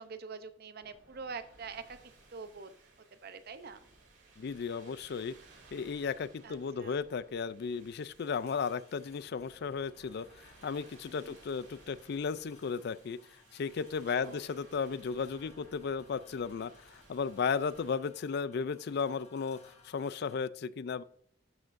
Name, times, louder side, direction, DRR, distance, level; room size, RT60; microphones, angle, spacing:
voice 1, 0.0-2.0 2.3-2.7 3.1-3.8 6.4-7.0 11.1-11.4 14.1-14.4, right 5 dB, 55° right, 11 dB, 0.7 m, -45 dB
sound 1, 0.8-17.9, right 3 dB, 70° right, 2.9 m, -60 dB
voice 2, 4.4-5.3 5.7-13.2 13.5-21.0, left 5 dB, 60° left, 18 dB, 0.4 m, -35 dB
sound 2, 7.7-20.4, left 3 dB, 35° left, 1.6 m, -63 dB
12.0 x 6.2 x 2.6 m, 0.68 s
head